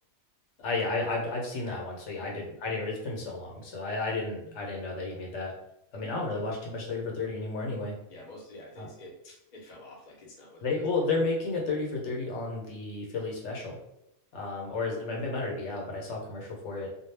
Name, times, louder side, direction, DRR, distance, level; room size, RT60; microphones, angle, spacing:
voice 1, 0.6-5.5 5.9-7.9 8.8-8.9 10.6-13.8 14.3-16.9, left 3 dB, 70° left, -1 dB, 0.9 m, -32 dB
voice 2, 8.1-10.7, left 1 dB, 45° left, -2 dB, 0.7 m, -49 dB
2.2 x 2.0 x 3.2 m, 0.83 s
omnidirectional pair, 1.3 m